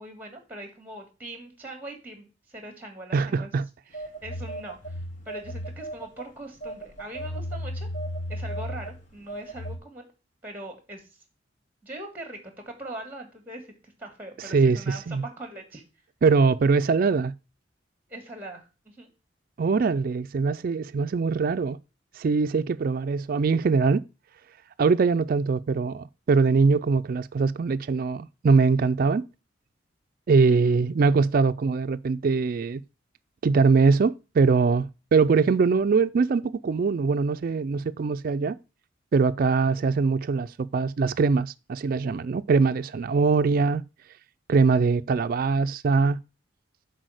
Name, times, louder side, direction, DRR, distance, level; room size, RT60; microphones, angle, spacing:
voice 1, 0.0-3.6 3.9-7.9 8.3-10.1 10.4-11.2 11.8-12.4 12.6-15.8 18.1-19.1 30.5-30.8, right 1 dB, 10° right, 1.6 m, -41 dB
voice 2, 3.1-3.6 14.5-15.2 16.2-17.3 19.6-21.8 22.2-24.0 24.8-29.3 30.3-32.8 33.4-38.6 39.1-43.8 44.5-46.2, right 4 dB, 50° right, 0.3 m, -22 dB
Telephone, 3.9-6.2 6.6-9.8, equal, 40° left, 1.3 m, -34 dB
6.2 x 4.1 x 6.3 m
head